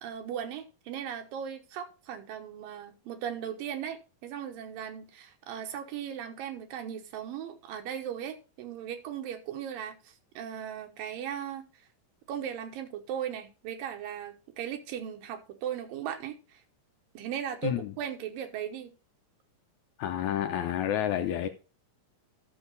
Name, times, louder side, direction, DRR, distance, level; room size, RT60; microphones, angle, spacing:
voice 1, 0.0-11.6 12.3-16.6 17.1-18.9, right 9 dB, 85° right, 2.8 m, -37 dB
voice 2, 20.0-21.5, left 10 dB, 75° left, 1.8 m, -29 dB
12.5 x 6.6 x 3.9 m
omnidirectional pair, 3.9 m